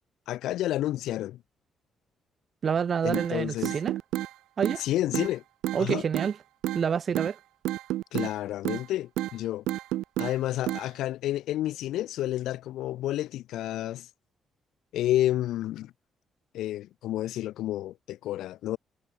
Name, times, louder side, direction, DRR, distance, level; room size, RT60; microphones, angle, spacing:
voice 1, 0.3-1.4 3.0-3.7 4.8-5.4 5.8-6.0 8.1-9.6 10.2-14.1 14.9-15.9 16.5-18.8, left 14 dB, 85° left, 0.8 m, -30 dB
voice 2, 2.6-3.9 4.6-4.8 5.7-6.4 6.7-7.4, right 7 dB, 50° right, 0.7 m, -28 dB
sound 1, 3.1-3.3 3.6-4.3 4.6-4.8 5.1-5.3 5.6-6.3 6.6-6.8 7.1-7.3 7.6-8.3 8.6-8.8 9.2-9.3 9.7-10.3 10.7-10.9, right 15 dB, 90° right, 0.4 m, -30 dB
cardioid pair, 90°, 0 cm